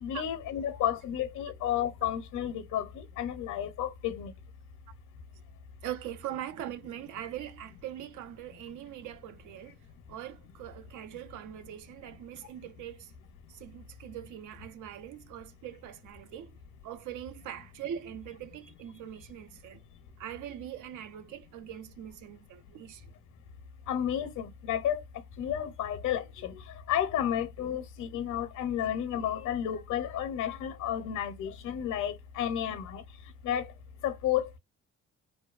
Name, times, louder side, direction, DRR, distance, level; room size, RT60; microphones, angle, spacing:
voice 1, 0.0-4.3 23.9-25.0 25.4-26.5 26.9-33.0 33.4-33.7 34.0-34.6, left 10 dB, 70° left, 0.6 m, -32 dB
voice 2, 5.8-9.8 10.1-13.1 13.5-16.6 16.8-19.8 20.2-23.1, right 11 dB, 80° right, 0.5 m, -42 dB
2.6 x 2.2 x 2.3 m
cardioid pair, 90°, 30 cm